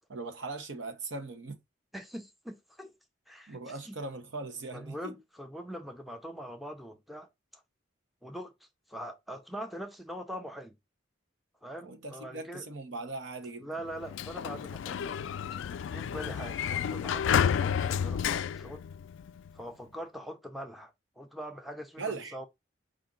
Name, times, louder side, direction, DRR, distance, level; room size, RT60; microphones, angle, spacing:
voice 1, 0.1-1.6 3.5-5.1 11.8-13.7 22.0-22.4, right 3 dB, 70° right, 0.9 m, -39 dB
voice 2, 1.9-2.9 3.3-4.0 4.7-7.6 8.2-8.5 8.9-10.8 11.6-12.7 13.6-15.2 15.9-18.8 19.5-22.5, equal, ahead, 0.5 m, -43 dB
Sliding door, 13.9-19.5, left 8 dB, 70° left, 0.3 m, -31 dB
5.0 x 2.5 x 3.7 m
head